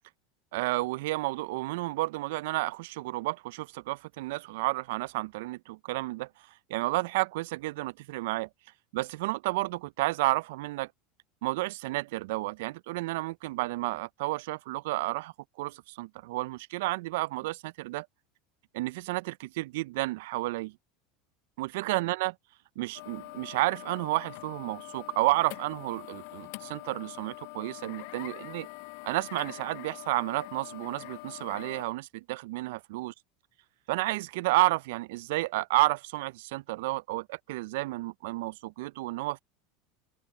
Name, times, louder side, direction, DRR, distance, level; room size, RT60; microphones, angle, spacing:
voice 1, 0.5-6.3 6.7-8.5 8.9-10.9 11.4-18.1 18.7-20.8 21.6-22.3 22.8-28.7 29.0-33.1 33.9-39.4, right 20 dB, 70° right, 0.4 m, -31 dB
sound 1, 22.9-31.8, left 30 dB, 65° left, 7.4 m, -44 dB
hypercardioid pair, 90°, 0 cm